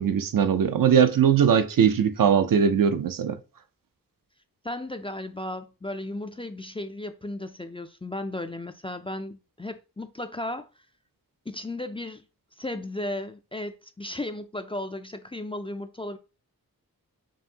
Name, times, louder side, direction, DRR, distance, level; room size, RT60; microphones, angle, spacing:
voice 1, 0.0-3.4, right 8 dB, 70° right, 0.5 m, -20 dB
voice 2, 4.6-10.7 11.5-12.2 12.6-16.2, left 1 dB, 15° left, 0.3 m, -35 dB
5.4 x 2.6 x 2.7 m
wide cardioid pair, 80°, 35 cm